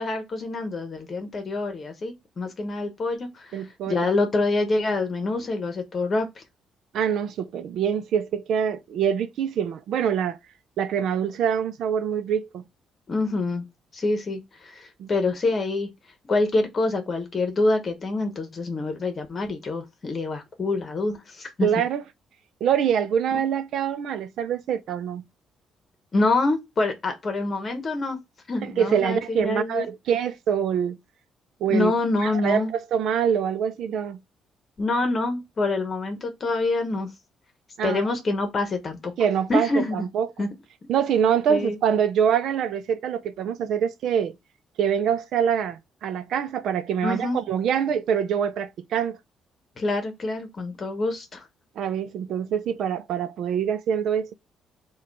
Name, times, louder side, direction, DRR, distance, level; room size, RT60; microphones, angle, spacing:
voice 1, 0.0-6.4 13.1-13.6 13.9-15.9 16.2-21.7 26.1-28.2 28.5-29.8 31.7-32.7 34.8-37.1 37.8-39.1 39.5-40.1 40.4-40.5 41.5-41.8 47.0-47.4 49.8-51.5, left 2 dB, 40° left, 1.0 m, -26 dB
voice 2, 3.5-4.0 6.9-10.4 10.8-12.6 15.0-15.1 21.6-22.0 22.6-25.2 28.8-31.0 31.6-31.9 32.2-34.2 37.8-38.0 39.2-40.4 40.9-44.3 44.8-49.2 51.8-54.3, right 8 dB, 75° right, 0.5 m, -25 dB
4.8 x 2.4 x 4.6 m
cardioid pair, 90°, 0 cm